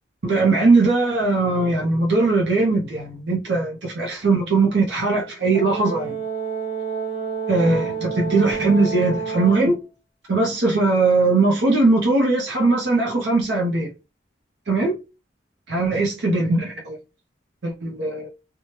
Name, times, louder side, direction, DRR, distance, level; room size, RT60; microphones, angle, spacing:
voice 1, 0.2-6.2 7.5-9.7 10.3-13.9 14.7-14.9 15.7-17.0 17.6-18.3, right 3 dB, 65° right, 0.7 m, -20 dB
Brass instrument, 5.5-9.7, right 6 dB, 30° left, 0.8 m, -29 dB
3.1 x 2.3 x 2.8 m
head